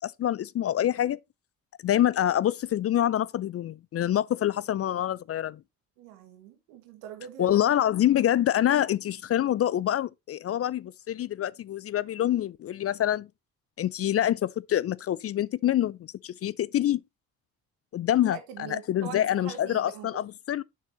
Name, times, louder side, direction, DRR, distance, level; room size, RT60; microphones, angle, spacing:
voice 1, 0.0-1.2 1.8-5.6 7.4-13.3 13.8-17.0 17.9-20.6, left 11 dB, 35° left, 0.4 m, -26 dB
voice 2, 6.0-7.6 18.3-20.2, right 9 dB, 80° right, 1.8 m, -43 dB
8.6 x 6.6 x 3.0 m
hypercardioid pair, 55°, 40 cm